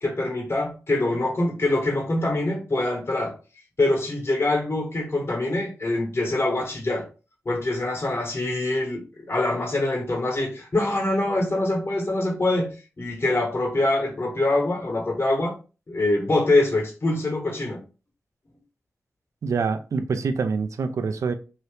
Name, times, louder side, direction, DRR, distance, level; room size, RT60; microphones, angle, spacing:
voice 1, 0.0-3.3 3.8-7.0 7.4-15.6 15.9-17.8, left 2 dB, 50° left, 1.2 m, -24 dB
voice 2, 19.4-21.3, right 5 dB, 75° right, 0.4 m, -25 dB
2.8 x 2.7 x 3.3 m
cardioid pair, 40°, 5 cm